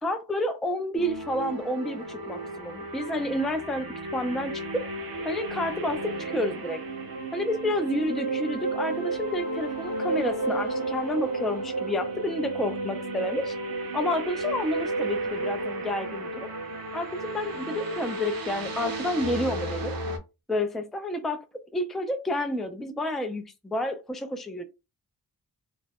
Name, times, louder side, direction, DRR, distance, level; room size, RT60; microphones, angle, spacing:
voice 1, 0.0-4.8 5.2-6.8 7.3-13.5 13.9-16.5 16.9-20.0 20.5-21.4 21.7-24.6, left 1 dB, ahead, 0.3 m, -30 dB
sound 1, 1.0-20.2, right 2 dB, 60° right, 0.8 m, -33 dB
sound 2, 2.2-3.2 5.2-6.2 8.1-9.2 11.1-12.2 14.1-15.2 17.1-18.2, right 2 dB, 35° left, 0.7 m, -40 dB
2.4 x 2.1 x 3.3 m
wide cardioid pair, 110°, 40 cm